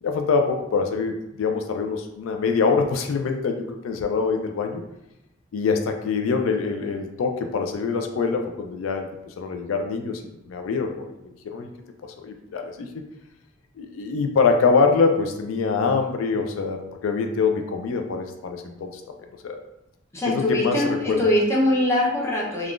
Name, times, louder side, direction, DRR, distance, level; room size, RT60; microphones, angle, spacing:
voice 1, 0.0-4.8 5.5-11.7 12.0-13.0 13.8-19.0 19.4-19.6 20.3-21.2, left 4 dB, 85° left, 5 dB, 0.3 m, -24 dB
voice 2, 20.1-22.7, left 1 dB, 15° left, -4 dB, 0.6 m, -22 dB
3.5 x 2.3 x 2.4 m, 0.89 s
head